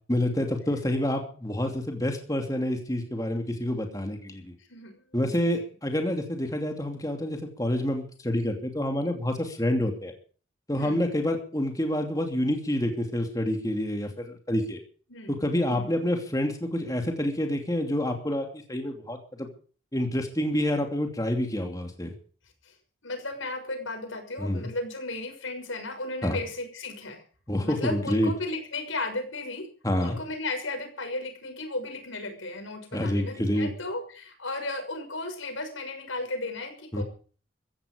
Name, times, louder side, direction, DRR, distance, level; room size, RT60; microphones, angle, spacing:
voice 1, 0.1-4.5 5.1-10.1 10.7-14.8 15.3-19.5 19.9-22.1 24.4-24.7 26.2-26.4 27.5-28.3 29.8-30.2 32.9-33.7 36.9-37.0, left 1 dB, 15° left, 4 dB, 2.8 m, -28 dB
voice 2, 4.6-5.6 10.8-11.1 15.1-15.9 22.6-22.8 23.0-27.2 27.6-29.7 30.0-37.0, left 2 dB, 85° left, 6 dB, 6.2 m, -35 dB
15.5 x 15.5 x 5.2 m, 0.41 s
head